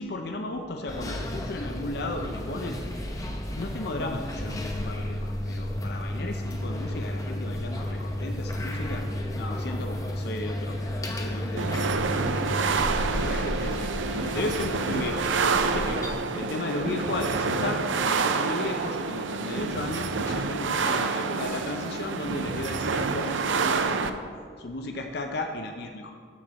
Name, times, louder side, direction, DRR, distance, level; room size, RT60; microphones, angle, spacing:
voice 1, 0.0-2.8 3.5-9.0 9.3-13.9 14.3-15.2 15.6-16.0 16.3-24.2 24.6-26.1, left 2 dB, 55° left, 4 dB, 0.6 m, -35 dB
sound 1, 0.9-16.2, left 1 dB, 20° left, 0.8 m, -32 dB
sound 2, 11.6-24.1, right 4 dB, 80° right, 0.5 m, -28 dB
13.0 x 4.4 x 6.2 m, 2.1 s
head